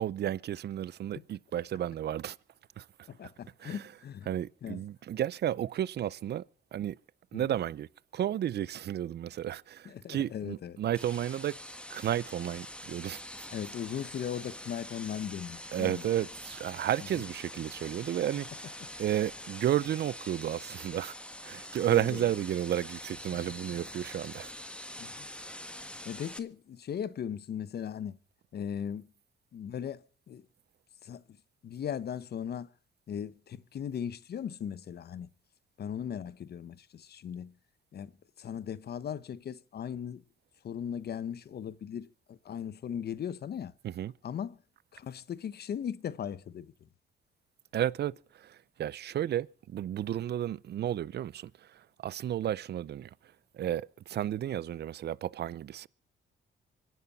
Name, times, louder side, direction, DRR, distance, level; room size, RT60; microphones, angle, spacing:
voice 1, 0.0-2.4 2.8-2.9 3.6-3.8 4.3-6.4 6.7-7.0 7.3-7.9 8.1-11.6 11.9-13.2 15.7-18.7 19.0-21.1 21.4-24.5 43.8-44.1 47.7-53.1 53.5-55.9, right 11 dB, 55° right, 0.6 m, -32 dB
voice 2, 3.1-4.3 4.6-4.8 7.3-7.5 9.8-10.8 13.5-16.2 18.8-18.9 21.8-22.2 23.3-23.4 25.0-25.3 26.0-28.2 28.5-29.1 29.5-30.4 31.0-31.2 31.6-32.7 33.1-35.3 35.8-37.5 37.9-38.1 38.4-40.2 40.6-43.7 44.2-44.6 44.9-46.7, left 8 dB, 55° left, 0.9 m, -38 dB
sound 1, 10.9-26.4, left 1 dB, 5° left, 1.5 m, -45 dB
25.0 x 11.0 x 4.1 m
cardioid pair, 90°, 20 cm